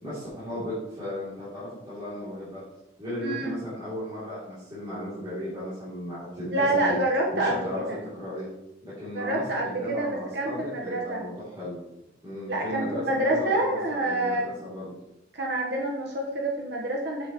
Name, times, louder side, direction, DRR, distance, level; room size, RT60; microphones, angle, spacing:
voice 1, 0.0-2.6 3.0-7.0 7.3-8.5 8.8-11.8 12.2-15.0, left 1 dB, 25° right, -13 dB, 3.0 m, -35 dB
voice 2, 3.2-3.5 6.5-8.0 9.1-11.2 12.5-14.4 15.3-17.3, right 1 dB, 60° right, -1 dB, 1.2 m, -27 dB
7.5 x 7.4 x 3.1 m, 0.92 s
head